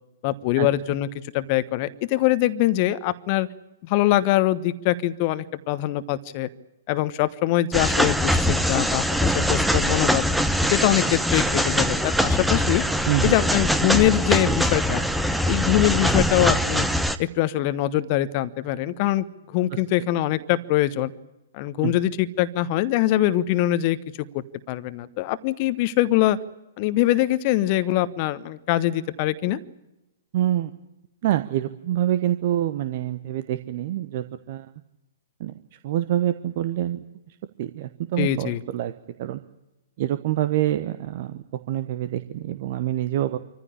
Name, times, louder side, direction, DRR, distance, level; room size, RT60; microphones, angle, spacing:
voice 1, 0.2-1.1 1.3-3.5 3.8-6.5 6.9-10.2 10.7-12.9 13.2-15.0 15.5-16.9 17.2-21.1 21.5-24.0 24.3-26.4 26.8-29.6 38.2-38.6, left 14 dB, 40° left, 14 dB, 1.2 m, -23 dB
sound 1, 7.7-17.2, equal, ahead, 1.0 m, -22 dB
voice 2, 13.1-13.4 21.8-21.9 30.3-30.7 31.2-34.7 35.4-37.0 37.3-38.9 39.2-39.4 40.0-43.4, right 12 dB, 45° right, 11 dB, 1.1 m, -26 dB
25.5 x 15.0 x 9.9 m, 0.95 s
figure-of-eight pair, 115°, 0 cm